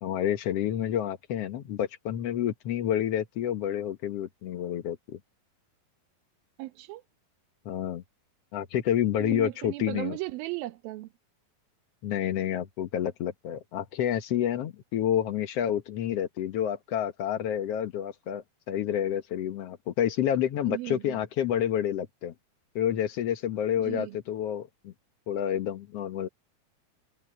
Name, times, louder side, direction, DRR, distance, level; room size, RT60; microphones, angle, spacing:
voice 1, 0.0-5.2 7.6-8.0 8.5-10.2 12.0-22.3 22.7-24.9 25.3-26.3, left 10 dB, 75° left, 1.4 m, -29 dB
voice 2, 6.6-7.0 9.2-11.1 20.6-21.2 23.8-24.2, right 17 dB, 75° right, 2.9 m, -36 dB
omnidirectional pair, 4.4 m